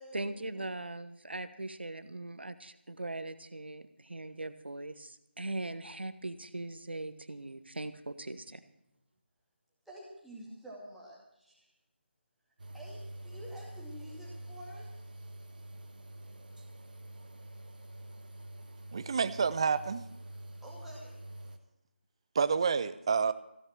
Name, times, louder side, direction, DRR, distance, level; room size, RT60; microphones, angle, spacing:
voice 1, 0.1-8.6, right 2 dB, 65° right, 12 dB, 1.2 m, -40 dB
voice 2, 9.9-11.7 12.7-14.9 20.6-21.1, equal, ahead, -7 dB, 2.3 m, -49 dB
sound 1, 12.6-21.6, right 1 dB, 45° right, 1.6 m, -46 dB
voice 3, 18.9-20.0 22.3-23.3, right 5 dB, 30° right, 15 dB, 0.6 m, -29 dB
16.0 x 9.0 x 7.6 m, 0.84 s
figure-of-eight pair, 160°, 6 cm